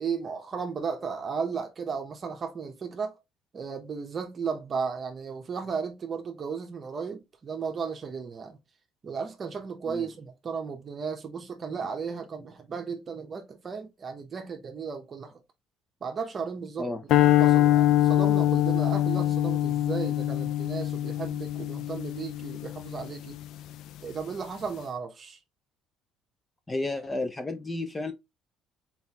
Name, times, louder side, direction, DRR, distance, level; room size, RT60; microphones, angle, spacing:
voice 1, 0.0-3.1 3.5-8.6 9.0-15.4 16.0-16.9 17.4-23.4 24.0-25.4, right 5 dB, 35° right, 0.8 m, -35 dB
sound 1, 17.1-23.4, left 13 dB, 70° left, 0.3 m, -24 dB
voice 2, 26.7-28.1, left 2 dB, 15° left, 0.5 m, -32 dB
4.1 x 3.9 x 2.9 m
cardioid pair, 110°, 0 cm